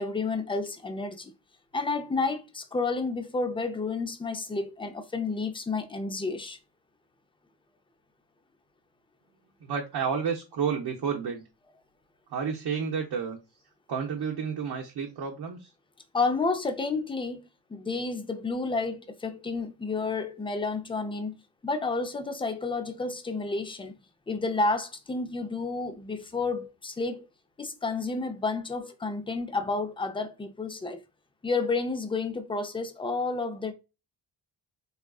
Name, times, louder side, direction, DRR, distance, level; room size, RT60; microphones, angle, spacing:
voice 1, 0.0-1.3 1.7-6.6 16.1-17.4 17.7-21.3 21.6-24.0 24.3-27.2 27.6-31.0 31.4-33.7, left 3 dB, 10° left, 0.4 m, -30 dB
voice 2, 9.6-11.4 12.3-13.4 13.9-15.7, right 6 dB, 55° right, 0.8 m, -30 dB
3.6 x 2.4 x 2.3 m
cardioid pair, 95°, 46 cm